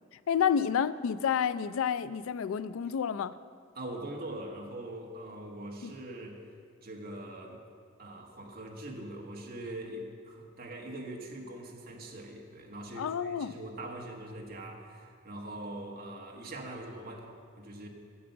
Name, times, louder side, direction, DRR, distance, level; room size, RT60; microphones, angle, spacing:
voice 1, 0.3-3.3 5.8-5.9 13.0-13.5, left 7 dB, 85° left, 15 dB, 0.4 m, -29 dB
voice 2, 3.7-6.4 6.8-7.6 8.0-17.9, right 1 dB, 45° right, 1 dB, 1.3 m, -42 dB
8.6 x 6.9 x 7.9 m, 2.2 s
head